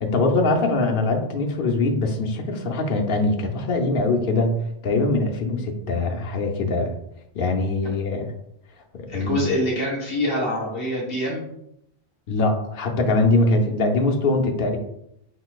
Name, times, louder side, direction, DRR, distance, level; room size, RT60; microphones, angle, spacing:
voice 1, 0.0-6.9 7.4-8.3 9.1-9.5 12.3-14.8, left 2 dB, 60° left, 2 dB, 0.8 m, -22 dB
voice 2, 9.1-11.5, equal, 25° left, -5 dB, 1.5 m, -25 dB
4.6 x 4.1 x 2.3 m, 0.78 s
omnidirectional pair, 1.1 m